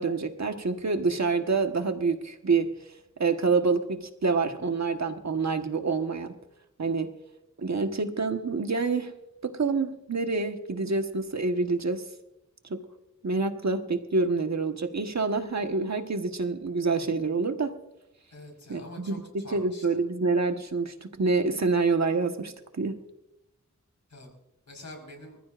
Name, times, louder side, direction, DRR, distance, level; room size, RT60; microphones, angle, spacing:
voice 1, 0.0-2.7 3.2-6.3 6.8-7.1 7.6-9.1 9.4-12.0 12.7-12.8 13.2-17.7 18.7-23.0, right 4 dB, 65° right, 6 dB, 1.4 m, -27 dB
voice 2, 18.3-20.0 24.1-24.3 24.7-25.4, left 1 dB, 65° left, 2 dB, 4.8 m, -45 dB
25.5 x 14.5 x 2.5 m, 0.88 s
wide cardioid pair, 85°, 30 cm